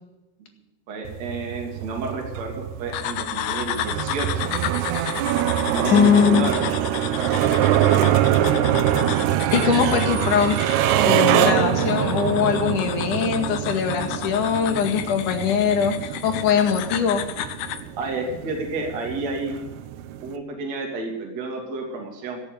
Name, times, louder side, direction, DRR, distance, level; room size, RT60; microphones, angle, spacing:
voice 1, 0.9-4.5 5.7-7.3 18.0-19.5 20.2-22.4, right 3 dB, 45° right, 1 dB, 3.6 m, -31 dB
sound 1, 1.0-20.4, right 11 dB, 80° right, 3.0 m, -24 dB
sound 2, 2.9-17.9, left 11 dB, 80° left, 3.0 m, -33 dB
sound 3, 5.8-7.4, right 4 dB, 65° right, 6.2 m, -33 dB
voice 2, 5.9-6.5 9.5-10.6 11.0-17.2, left 7 dB, 55° left, 3 dB, 3.2 m, -21 dB
17.5 x 7.0 x 9.6 m, 0.98 s
omnidirectional pair, 4.7 m